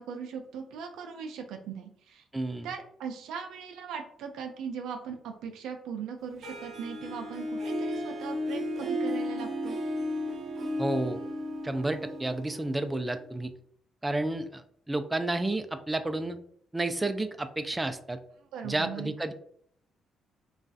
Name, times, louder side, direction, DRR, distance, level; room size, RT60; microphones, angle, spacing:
voice 1, 0.0-2.2 2.6-9.8 18.5-19.1, right 6 dB, 85° right, 4 dB, 0.4 m, -39 dB
voice 2, 2.3-2.7 10.8-11.2 11.6-13.5 14.0-16.4 16.7-18.2 18.6-19.3, right 2 dB, 15° right, 9 dB, 0.3 m, -31 dB
Harp, 6.4-13.3, equal, 50° right, 0.7 m, -34 dB
3.1 x 2.3 x 2.6 m, 0.64 s
cardioid pair, 90°, 0 cm